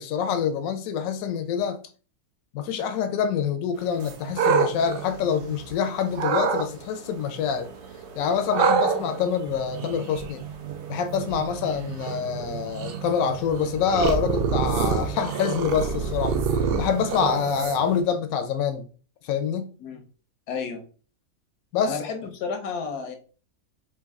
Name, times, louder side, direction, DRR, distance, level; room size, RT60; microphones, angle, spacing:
voice 1, 0.0-1.8 2.5-7.7 8.1-10.4 10.9-16.3 16.8-18.9 19.2-19.8 21.7-22.0, left 7 dB, 70° left, 0.9 m, -26 dB
sound 1, 3.7-18.0, right 5 dB, 55° right, 0.9 m, -45 dB
sound 2, 4.0-5.7 6.1-6.7 8.5-18.0, right 6 dB, 85° right, 0.5 m, -27 dB
voice 2, 20.5-20.8 21.8-23.2, left 5 dB, 90° left, 1.4 m, -31 dB
4.5 x 2.5 x 3.5 m
omnidirectional pair, 1.6 m